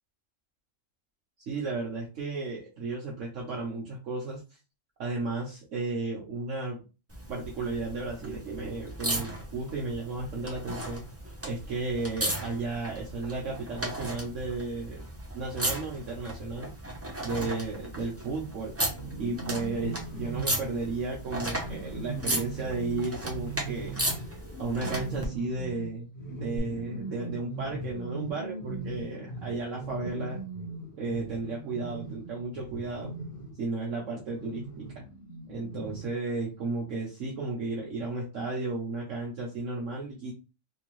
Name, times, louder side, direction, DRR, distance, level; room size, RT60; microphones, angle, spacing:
voice 1, 1.5-4.4 5.0-6.8 7.3-11.0 11.4-15.0 15.3-16.7 17.2-18.7 19.2-24.0 24.6-26.1 26.4-30.4 31.0-33.1 33.6-35.0 35.5-40.3, right 3 dB, 70° right, -3 dB, 1.2 m, -34 dB
sound 1, 7.1-25.3 26.6-26.7, right 1 dB, 15° right, 0.5 m, -36 dB
sound 2, 18.9-33.6 34.3-36.2, right 2 dB, 65° left, 1.6 m, -39 dB
3.5 x 2.8 x 3.0 m, 0.31 s
omnidirectional pair, 1.4 m